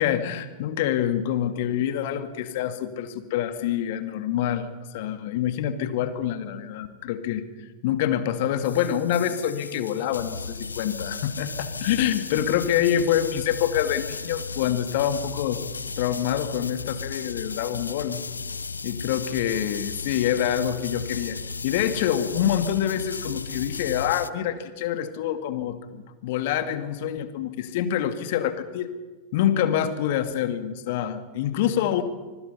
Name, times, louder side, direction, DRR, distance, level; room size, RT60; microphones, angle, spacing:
voice 1, 0.0-15.6 16.0-18.2 18.8-21.4 21.6-28.9 29.3-32.0, left 10 dB, 50° left, 10 dB, 2.1 m, -26 dB
sound 1, 8.6-24.3, left 4 dB, 75° left, 0.6 m, -35 dB
26.0 x 24.5 x 5.7 m, 1.3 s
figure-of-eight pair, 90°, 0 cm